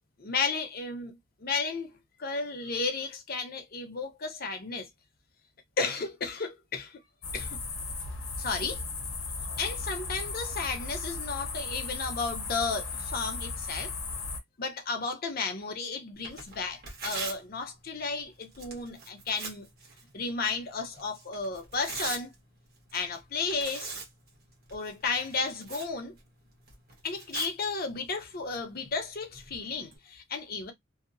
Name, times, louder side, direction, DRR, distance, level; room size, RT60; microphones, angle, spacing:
voice 1, 0.2-1.9 2.2-4.9 5.8-7.0 7.3-7.6 8.4-8.8 9.6-13.9 14.6-19.7 20.1-22.3 22.9-23.9 24.7-26.2 27.0-30.7, left 4 dB, 50° left, 0.7 m, -33 dB
sound 1, 7.2-14.4, left 3 dB, 90° left, 0.8 m, -36 dB
Tearing, 16.1-30.0, right 4 dB, 50° right, 1.1 m, -44 dB
2.7 x 2.0 x 2.5 m
head